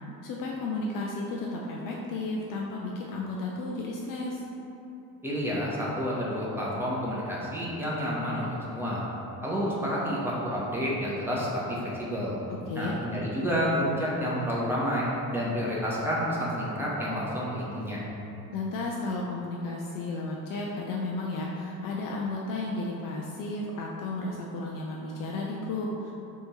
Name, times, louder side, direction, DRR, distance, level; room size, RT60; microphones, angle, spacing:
voice 1, 0.2-4.4 12.7-13.0 18.5-26.1, left 2 dB, 45° left, -2 dB, 0.5 m, -33 dB
voice 2, 5.2-9.0 9.4-12.3 12.8-18.0, equal, 5° right, -7 dB, 1.0 m, -29 dB
3.6 x 2.6 x 4.3 m, 3.0 s
figure-of-eight pair, 60°, 47 cm